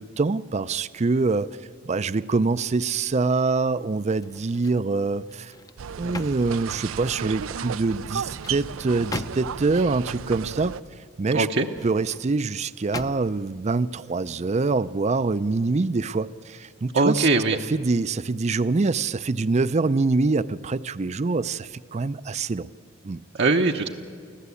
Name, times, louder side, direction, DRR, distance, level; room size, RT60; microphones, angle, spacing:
voice 1, 0.0-1.5 1.8-5.5 6.0-10.7 11.2-11.5 11.8-17.3 17.7-22.7 23.0-23.2, right 3 dB, 35° right, 16 dB, 0.5 m, -25 dB
sound 1, 4.2-4.9 5.3-7.3 8.0-9.7 11.5-12.3 12.9-13.5 14.0-14.2, left 2 dB, 20° left, 0.6 m, -39 dB
sound 2, 5.8-10.8, right 7 dB, 90° right, 0.5 m, -34 dB
voice 2, 11.3-11.7 16.9-17.6 23.3-23.9, right 3 dB, 60° right, 2 dB, 0.9 m, -21 dB
25.0 x 15.5 x 8.4 m, 2.2 s
head